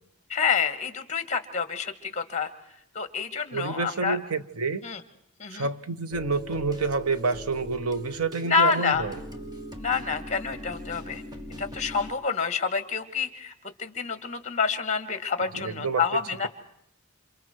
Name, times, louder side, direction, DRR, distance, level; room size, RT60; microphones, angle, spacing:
voice 1, 0.3-2.5 3.0-4.2 4.8-5.0 5.4-5.7 8.5-9.0 9.8-11.2 11.6-13.5 13.8-16.5, left 5 dB, 30° left, 2.0 m, -28 dB
voice 2, 3.5-4.9 5.5-9.2 15.5-16.0, right 4 dB, 90° right, 1.1 m, -28 dB
sound 1, 6.1-12.1, equal, 20° right, 1.6 m, -40 dB
29.0 x 28.0 x 4.7 m
head